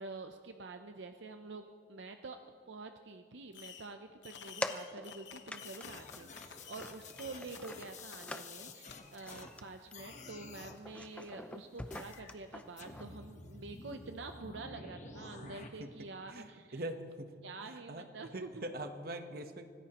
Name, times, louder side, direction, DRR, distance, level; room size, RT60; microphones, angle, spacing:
voice 1, 0.0-2.4 2.7-16.8 17.4-18.6, right 3 dB, 75° right, 6 dB, 0.6 m, -47 dB
Fireworks, 3.5-4.0 4.2-6.9 7.1-7.6 8.1-8.2 8.9-9.0, left 8 dB, 70° left, 0.9 m, -51 dB
sound 1, 4.6-5.2 5.5-5.9 6.1-8.8 9.2-9.6 9.9-10.2 10.5-13.0, left 1 dB, 5° left, 0.5 m, -44 dB
sound 2, 5.6-9.6 9.9-10.8 11.9-12.3 12.8-15.7, left 3 dB, 40° left, 1.1 m, -51 dB
voice 2, 15.2-15.5 15.8-15.9 16.3-17.3 17.6-18.1 18.3-19.7, right 1 dB, 50° right, 7 dB, 1.1 m, -43 dB
25.5 x 18.5 x 3.0 m, 2.1 s
head